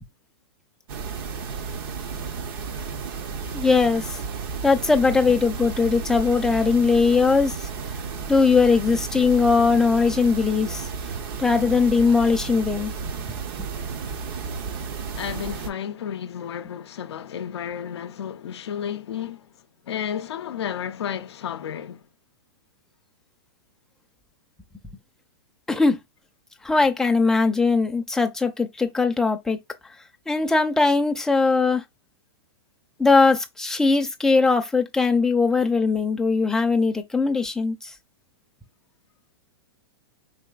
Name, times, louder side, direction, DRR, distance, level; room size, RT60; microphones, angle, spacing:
sound 1, 0.9-15.7, right 5 dB, 60° right, 0.7 m, -33 dB
voice 1, 3.5-4.2 4.6-7.6 8.3-10.9 11.4-12.9 13.6-13.7 25.7-26.0 26.6-29.6 30.3-31.8 33.0-37.9, left 4 dB, 5° left, 0.5 m, -20 dB
voice 2, 15.1-22.0, left 8 dB, 90° left, 0.4 m, -32 dB
4.0 x 3.0 x 2.3 m
hypercardioid pair, 130°, 13 cm